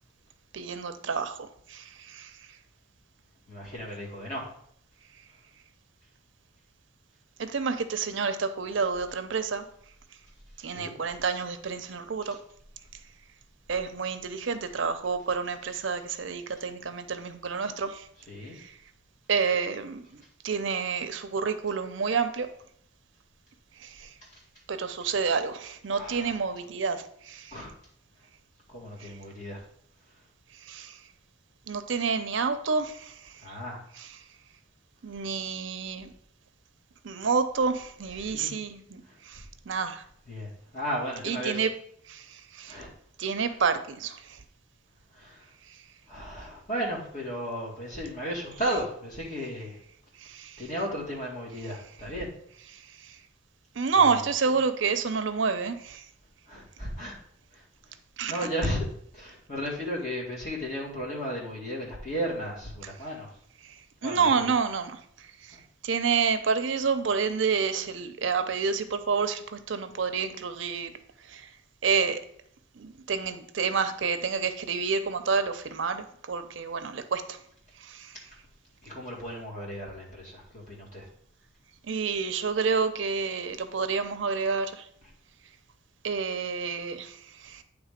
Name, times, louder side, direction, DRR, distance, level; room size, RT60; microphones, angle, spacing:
voice 1, 0.5-2.3 7.4-9.7 10.6-12.4 13.7-18.1 18.5-18.7 19.3-22.5 23.8-24.1 24.7-27.6 29.0-29.1 30.6-31.0 31.7-33.4 34.0-34.1 35.0-36.1 37.0-40.0 41.2-41.7 42.1-42.8 43.2-44.4 50.2-50.6 52.7-53.2 53.8-56.1 58.2-58.3 63.6-63.7 64.0-65.6 65.8-71.0 71.3-71.5 71.8-72.2 72.8-77.4 77.8-78.2 81.9-84.9 86.0-87.6, right 5 dB, 70° right, 9 dB, 0.6 m, -29 dB
voice 2, 3.5-4.5 10.6-10.9 12.2-12.4 14.8-14.9 15.6-15.8 18.2-18.6 24.2-24.4 25.9-26.4 27.5-27.7 28.7-29.6 33.4-33.8 38.0-38.5 39.1-39.2 40.3-41.7 42.7-42.9 43.5-43.6 45.1-45.5 46.1-49.8 50.6-52.3 53.9-54.6 56.5-57.1 57.5-57.6 58.3-58.9 59.1-63.3 64.0-64.5 65.5-65.6 78.8-81.1 85.0-85.1, equal, 35° left, -4 dB, 2.2 m, -35 dB
9.0 x 3.6 x 5.0 m, 0.67 s
head